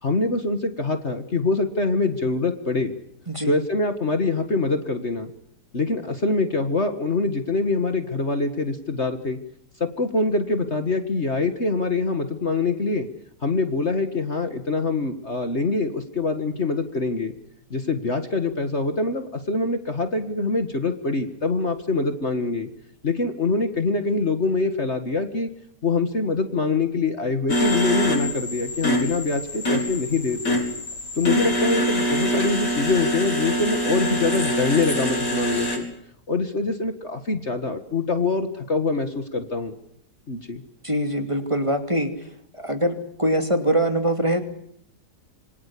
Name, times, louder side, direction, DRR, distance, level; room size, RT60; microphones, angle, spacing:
voice 1, 0.0-2.9 3.4-5.3 5.7-9.4 9.8-13.1 13.4-17.3 17.7-22.7 23.0-25.5 25.8-30.6 31.2-35.9 36.3-39.7 40.3-40.6, left 3 dB, 40° left, 7 dB, 2.0 m, -24 dB
sound 1, 27.5-35.8, equal, 75° left, 5.4 m, -25 dB
voice 2, 40.8-42.1 42.5-44.4, right 1 dB, 15° right, 6 dB, 2.6 m, -23 dB
26.5 x 24.5 x 8.5 m, 0.72 s
omnidirectional pair, 1.8 m